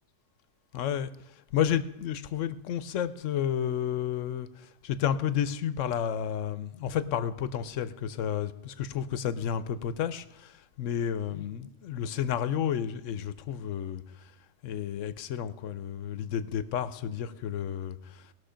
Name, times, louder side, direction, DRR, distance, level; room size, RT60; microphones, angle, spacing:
voice 1, 0.7-1.1 1.5-14.0 14.6-18.2, left 9 dB, 80° left, 15 dB, 1.0 m, -31 dB
19.0 x 6.3 x 5.0 m, 0.95 s
omnidirectional pair, 1.3 m